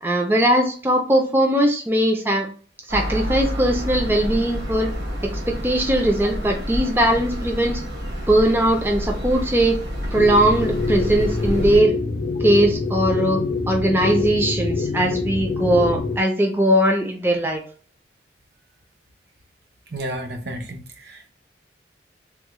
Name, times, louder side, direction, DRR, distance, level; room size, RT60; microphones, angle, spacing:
voice 1, 0.0-2.5 2.9-4.9 5.2-7.8 8.3-9.8 10.1-12.0 12.4-17.6, right 1 dB, 10° right, 0.4 m, -20 dB
sound 1, 2.9-11.8, equal, 85° right, 1.1 m, -29 dB
sound 2, 10.1-16.2, left 3 dB, 65° left, 0.5 m, -25 dB
voice 2, 19.9-21.2, right 1 dB, 65° right, 0.6 m, -32 dB
3.5 x 2.1 x 3.0 m
head